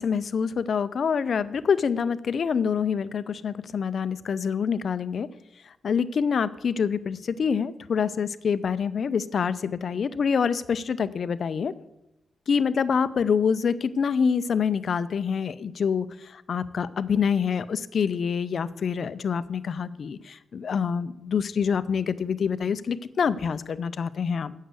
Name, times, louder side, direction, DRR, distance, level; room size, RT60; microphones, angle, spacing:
voice 1, 0.0-5.3 5.8-11.7 12.5-16.1 16.3-24.5, left 6 dB, 55° left, 14 dB, 0.5 m, -26 dB
7.8 x 6.4 x 8.1 m, 0.88 s
wide cardioid pair, 150°, 0 cm